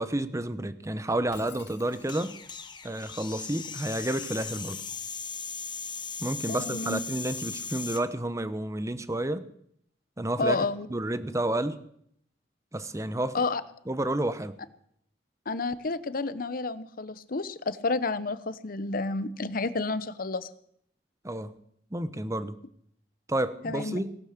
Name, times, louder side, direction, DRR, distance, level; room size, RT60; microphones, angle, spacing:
voice 1, 0.0-2.3 2.8-4.8 6.2-9.4 10.2-10.6 10.9-11.8 12.7-13.4 13.9-14.5 21.2-21.5 21.9-22.6 23.3-24.1, right 1 dB, 15° right, 13 dB, 0.9 m, -30 dB
Shatter, 1.3-2.5, left 6 dB, 70° left, 2.4 m, -51 dB
sound 1, 1.9-8.0, left 6 dB, 25° left, 1.1 m, -38 dB
voice 2, 6.5-7.0 10.4-10.9 13.3-13.6 15.5-20.5 23.6-24.0, left 3 dB, 50° left, 15 dB, 0.9 m, -30 dB
18.0 x 11.5 x 6.6 m, 0.69 s
head